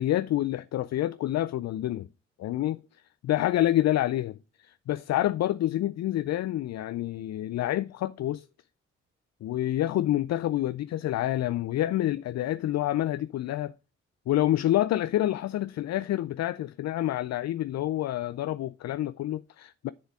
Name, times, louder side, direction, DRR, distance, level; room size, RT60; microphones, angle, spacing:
voice 1, 0.0-2.1 2.4-2.8 3.2-4.3 4.9-8.5 9.4-13.7 14.3-19.9, left 13 dB, 55° left, 0.5 m, -27 dB
7.3 x 6.9 x 4.7 m
hypercardioid pair, 45°, 31 cm